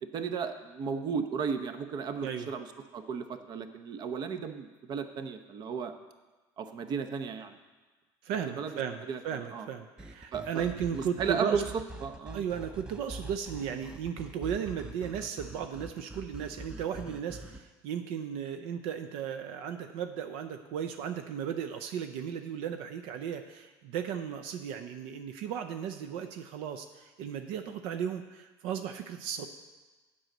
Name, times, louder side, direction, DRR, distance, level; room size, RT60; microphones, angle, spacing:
voice 1, 0.0-2.7 2.9-5.9 6.6-7.6 8.6-8.7 9.1-9.2 9.5-9.7 10.3-10.7 10.9-11.6 12.0-12.4, right 6 dB, 50° right, 8 dB, 0.8 m, -34 dB
voice 2, 8.2-11.6 12.3-29.5, right 8 dB, 80° right, 7 dB, 0.6 m, -35 dB
sound 1, 10.0-17.6, right 1 dB, 10° right, 0.6 m, -45 dB
7.7 x 5.6 x 7.7 m, 1.3 s
cardioid pair, 120°, 10 cm